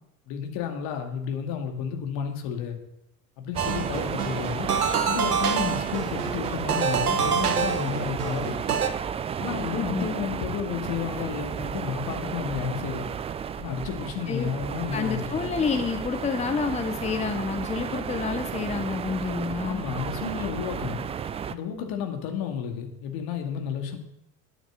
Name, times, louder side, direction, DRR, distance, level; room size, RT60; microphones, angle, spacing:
voice 1, 0.3-2.8 3.4-4.7 5.1-8.6 9.4-13.1 13.6-15.3 19.7-21.1 21.5-24.0, left 7 dB, 50° left, 4 dB, 2.3 m, -32 dB
sound 1, 3.5-21.5, right 8 dB, 15° right, 0.4 m, -33 dB
sound 2, 3.6-8.9, right 6 dB, 80° right, 1.3 m, -27 dB
voice 2, 9.7-10.1 14.3-14.5 14.9-19.9, left 5 dB, 15° left, 8 dB, 0.9 m, -28 dB
9.4 x 7.9 x 7.7 m, 0.81 s
figure-of-eight pair, 75°, 45 cm